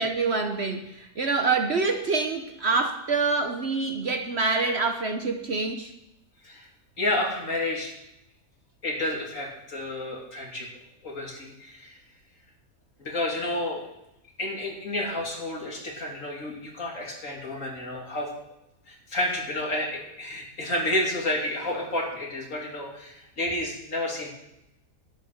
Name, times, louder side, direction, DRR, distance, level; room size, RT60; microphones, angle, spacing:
voice 1, 0.0-5.9, right 4 dB, 45° right, 5 dB, 1.1 m, -26 dB
voice 2, 7.0-7.9 8.8-10.7 11.0-12.0 13.0-13.8 14.4-18.3 18.9-24.3, left 1 dB, 55° left, -1 dB, 3.4 m, -30 dB
12.0 x 9.7 x 6.5 m, 0.87 s
omnidirectional pair, 1.6 m